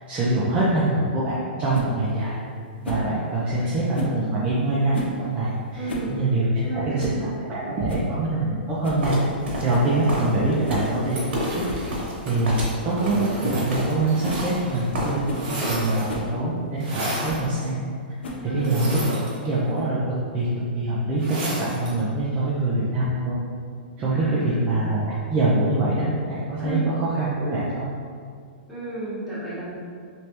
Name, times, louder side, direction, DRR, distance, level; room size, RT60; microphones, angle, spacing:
voice 1, 0.1-2.3 2.9-9.1 9.6-11.6 12.2-17.8 18.4-20.0 20.3-20.5 20.7-23.4 24.0-27.9, right 2 dB, 20° right, -8 dB, 0.5 m, -24 dB
sound 1, 1.7-1.9 2.8-3.1 3.9-4.2 4.9-5.2 5.7-6.1 6.4-6.5 7.0-7.2 7.6-7.7 7.9-8.1 8.8-9.1 9.7-9.9 10.6-10.9 11.2-11.3 11.6-11.9 12.1-12.2 12.6-12.8 13.4-13.6 14.2-14.4 14.9-15.0 15.3-15.5 16.1-16.3 17.2-17.5 18.2-18.6, left 1 dB, 90° left, 0.7 m, -32 dB
voice 2, 3.4-4.0 5.7-6.2 6.6-7.9 9.9-10.0 18.4-18.9 24.1-24.9 26.6-26.9 28.7-29.7, right 2 dB, ahead, -13 dB, 1.3 m, -34 dB
sound 2, 9.0-15.4 15.6-16.2, equal, 75° right, 1.1 m, -31 dB
sound 3, 11.1-14.8 15.1-16.3 16.8-17.5 18.6-19.8 21.2-22.0, right 1 dB, 35° right, 1.1 m, -33 dB
3.3 x 3.1 x 2.9 m, 2.2 s
hypercardioid pair, 145°, 6 cm